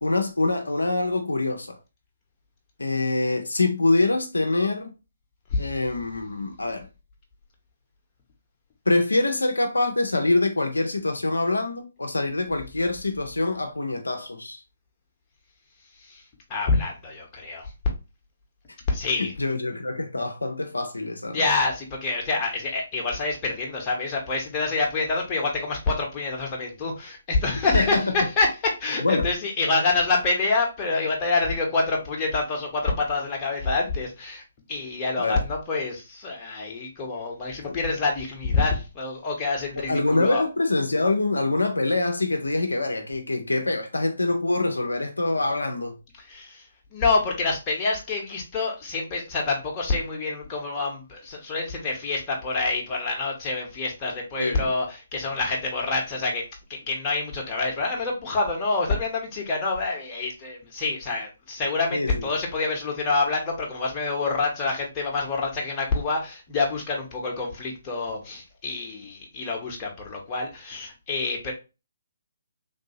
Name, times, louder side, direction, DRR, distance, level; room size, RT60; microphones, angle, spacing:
voice 1, 0.0-1.8 2.8-4.9 5.6-6.9 8.9-14.6 19.2-21.4 27.7-28.1 29.0-29.3 35.2-35.4 39.8-46.0 54.4-54.7 61.9-62.3, left 2 dB, 75° left, 0.5 m, -25 dB
voice 2, 16.5-17.7 18.9-19.3 21.3-34.4 34.7-40.4 46.2-46.6 46.9-56.4 56.7-71.5, left 3 dB, 20° left, 0.8 m, -27 dB
3.2 x 2.6 x 2.7 m
figure-of-eight pair, 135°, 0 cm